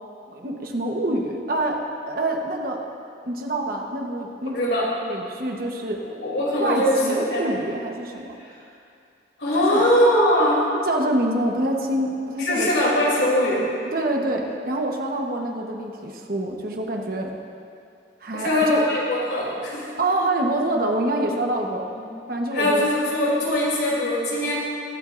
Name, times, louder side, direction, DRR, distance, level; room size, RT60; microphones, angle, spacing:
voice 1, 0.3-2.8 3.2-6.0 6.6-8.4 9.5-9.8 10.7-12.7 13.9-17.3 18.2-18.8 20.0-21.9 22.3-22.9, right 1 dB, 55° right, 1 dB, 1.1 m, -26 dB
voice 2, 4.5-4.9 6.2-7.0 7.3-7.5 9.4-10.7 12.4-13.6 18.3-19.8 22.0-22.1 22.5-24.5, left 1 dB, 80° left, -5 dB, 3.0 m, -21 dB
21.5 x 8.8 x 2.6 m, 2.5 s
head